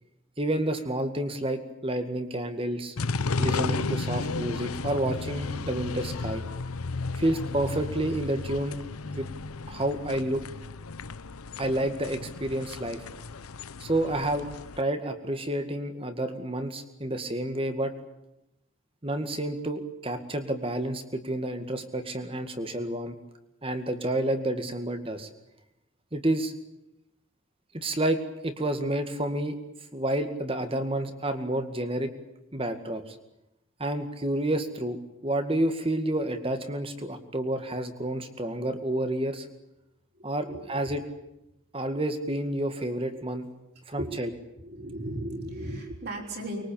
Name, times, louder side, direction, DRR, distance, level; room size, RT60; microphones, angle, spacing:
voice 1, 0.4-3.0 3.4-6.4 7.1-8.8 9.0-9.3 9.7-10.4 11.6-13.0 13.8-14.5 14.8-17.9 19.0-23.2 23.6-25.3 26.1-26.5 27.7-29.6 29.9-32.1 32.5-33.2 33.8-39.5 40.2-41.0 41.7-43.5 43.9-44.3, right 1 dB, 25° right, 8 dB, 2.1 m, -29 dB
sound 1, 3.0-14.8, left 3 dB, 90° left, 0.9 m, -33 dB
voice 2, 40.1-40.6 43.1-43.2 44.0-44.1 44.6-46.6, right 1 dB, 45° right, -1 dB, 5.8 m, -36 dB
24.0 x 22.5 x 8.9 m, 0.89 s
head